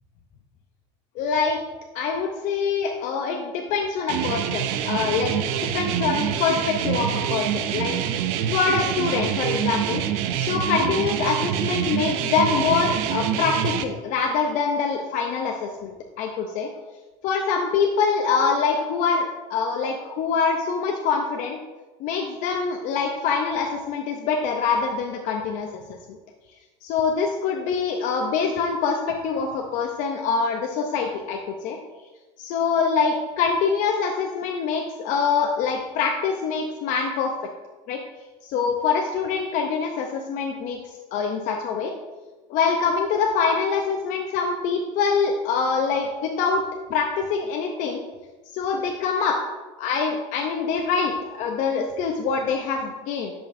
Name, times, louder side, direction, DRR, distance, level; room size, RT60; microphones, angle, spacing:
voice 1, 1.2-1.6 1.9-8.0 8.5-10.0 10.4-16.7 17.2-21.6 22.0-25.7 26.8-31.8 32.4-37.3 37.9-38.0 38.4-41.9 42.5-46.6 46.9-48.0 48.5-49.4 49.8-53.3, left 5 dB, 55° left, 2 dB, 0.7 m, -24 dB
sound 1, 4.1-13.8, right 10 dB, 70° right, 0.6 m, -26 dB
10.0 x 5.2 x 2.6 m, 1.2 s
supercardioid pair, 110°, 16 cm